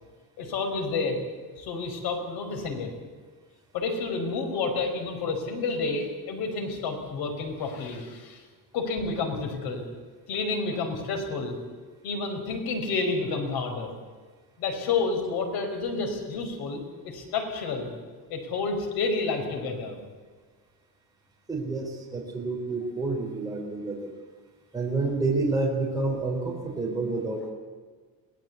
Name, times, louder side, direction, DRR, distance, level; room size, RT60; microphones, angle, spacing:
voice 1, 0.4-1.2 1.6-2.9 3.7-8.4 8.7-9.8 10.3-11.6 12.0-13.9 14.6-17.9 18.3-20.0, left 4 dB, 85° left, 4 dB, 5.1 m, -30 dB
voice 2, 21.5-24.1 24.7-27.5, right 3 dB, 10° right, -2 dB, 3.6 m, -29 dB
22.5 x 17.5 x 8.2 m, 1.5 s
cardioid pair, 180°, 36 cm